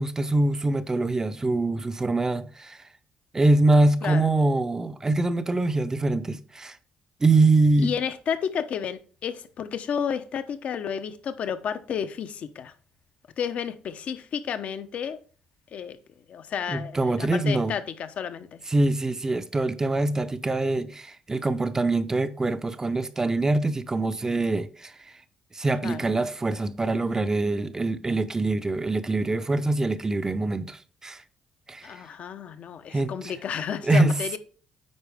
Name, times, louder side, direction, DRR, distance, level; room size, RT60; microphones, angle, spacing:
voice 1, 0.0-2.8 3.3-6.7 7.2-7.9 16.7-17.7 18.7-24.9 25.5-31.2 31.7-31.9 32.9-33.3 33.8-34.1, right 2 dB, 20° right, 0.6 m, -24 dB
voice 2, 7.8-12.7 13.4-15.2 15.7-16.0 16.3-18.6 25.8-26.1 31.8-34.4, left 7 dB, 65° left, 0.8 m, -31 dB
9.5 x 4.4 x 3.5 m
cardioid pair, 75°, 3 cm